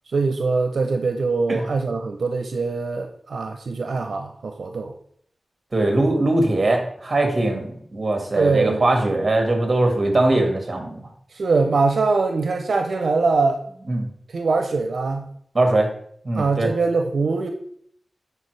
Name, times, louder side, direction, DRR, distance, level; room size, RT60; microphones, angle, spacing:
voice 1, 0.1-4.9 8.3-8.8 11.3-13.6 14.3-15.3 16.4-17.5, right 4 dB, 90° right, 5 dB, 0.6 m, -22 dB
voice 2, 5.7-11.1 13.9-14.1 15.5-15.9 16.2-16.7, right 2 dB, 40° right, 3 dB, 1.8 m, -21 dB
9.8 x 4.3 x 3.2 m, 0.64 s
wide cardioid pair, 85°, 0 cm